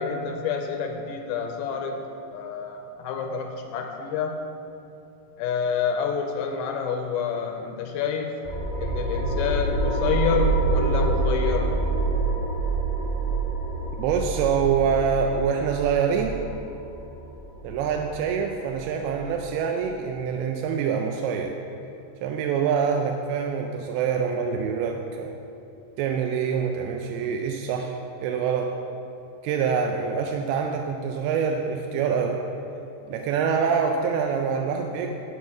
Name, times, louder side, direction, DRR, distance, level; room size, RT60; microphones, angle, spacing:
voice 1, 0.0-2.0 2.3-4.5 5.4-8.4 8.8-11.8, left 6 dB, 80° left, 4 dB, 2.3 m, -28 dB
sound 1, 8.4-19.5, right 3 dB, 5° left, 0.9 m, -27 dB
voice 2, 14.0-16.4 17.6-21.6 22.2-25.4 26.0-28.8 29.4-32.4 33.1-35.2, right 6 dB, 80° right, 3 dB, 2.4 m, -25 dB
11.0 x 4.6 x 7.1 m, 2.9 s
omnidirectional pair, 4.7 m